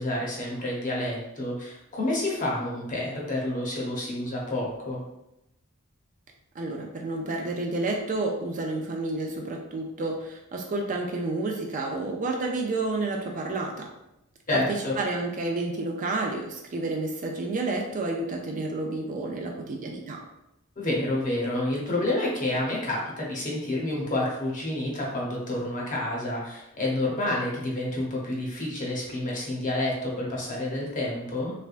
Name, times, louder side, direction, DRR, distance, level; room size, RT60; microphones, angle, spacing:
voice 1, 0.0-5.0 14.5-15.0 20.8-31.5, left 1 dB, 35° left, -3 dB, 0.9 m, -29 dB
voice 2, 6.6-13.9 14.5-20.2, right 2 dB, 35° right, 1 dB, 0.4 m, -30 dB
3.3 x 3.3 x 2.5 m, 0.86 s
head